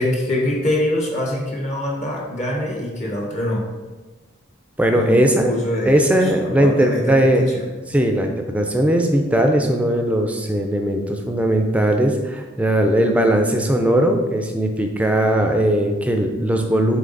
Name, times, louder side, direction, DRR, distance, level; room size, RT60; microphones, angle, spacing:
voice 1, 0.0-3.7 4.9-7.7, left 1 dB, 35° left, -1 dB, 0.8 m, -24 dB
voice 2, 4.8-5.5 5.9-7.5 7.9-17.0, right 1 dB, 5° right, 3 dB, 0.5 m, -18 dB
7.6 x 3.2 x 3.9 m, 1.2 s
head